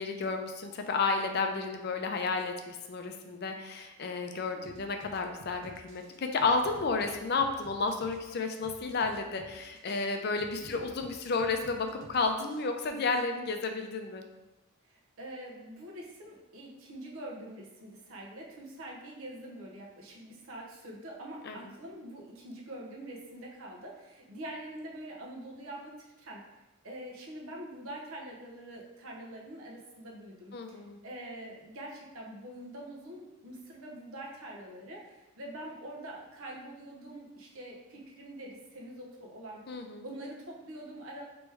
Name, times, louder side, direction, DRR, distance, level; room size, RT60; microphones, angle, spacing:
voice 1, 0.0-14.2 21.5-21.6 30.5-31.0 39.7-40.0, left 4 dB, 45° left, 5 dB, 0.4 m, -32 dB
voice 2, 4.5-4.8 10.6-10.7 14.8-26.4 26.8-39.7 40.0-41.2, right 1 dB, 70° right, -2 dB, 0.9 m, -45 dB
sound 1, 4.6-12.6, right 2 dB, 55° right, 0.5 m, -52 dB
3.3 x 3.0 x 4.6 m, 1.0 s
head